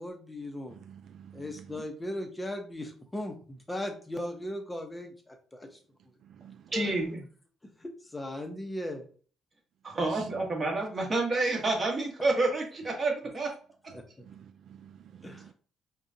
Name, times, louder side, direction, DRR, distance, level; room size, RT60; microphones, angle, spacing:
voice 1, 0.0-0.8 1.3-5.8 6.7-7.2 7.6-9.1 13.9-14.3 15.2-15.5, left 1 dB, 15° left, 0.9 m, -38 dB
voice 2, 0.7-1.8 6.4-7.1 10.0-10.5 14.3-15.5, right 9 dB, 65° right, 0.3 m, -50 dB
voice 3, 6.7-7.2 9.8-13.5 13.8-13.9, right 2 dB, 30° right, 1.6 m, -29 dB
5.0 x 2.4 x 2.8 m
cardioid pair, 110°, 0 cm